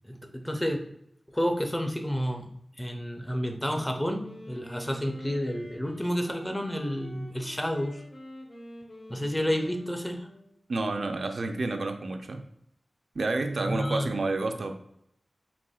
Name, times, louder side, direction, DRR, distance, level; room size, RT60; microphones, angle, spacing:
voice 1, 0.0-0.8 1.3-2.5 2.8-8.0 9.1-10.3 13.6-14.1, equal, 10° left, 4 dB, 0.4 m, -30 dB
Wind instrument woodwind instrument, 3.8-10.6, left 1 dB, 60° left, 0.9 m, -47 dB
voice 2, 10.7-12.4 13.2-14.7, right 3 dB, 70° right, 5 dB, 0.3 m, -29 dB
4.1 x 2.8 x 2.3 m, 0.75 s
wide cardioid pair, 95°, 0 cm